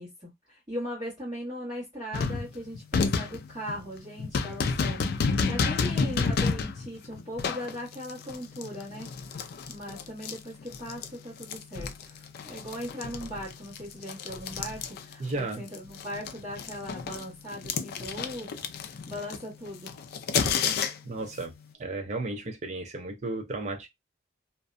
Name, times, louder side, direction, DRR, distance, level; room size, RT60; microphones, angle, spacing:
voice 1, 0.0-9.4 9.7-18.5 18.8-19.9, equal, 20° right, 1.1 m, -39 dB
sound 1, 2.1-11.1 11.4-15.4 15.7-21.2, left 5 dB, 55° left, 0.3 m, -30 dB
voice 2, 15.2-15.6 21.0-21.5 21.8-23.9, right 2 dB, 35° right, 0.5 m, -34 dB
2.6 x 2.1 x 2.4 m
head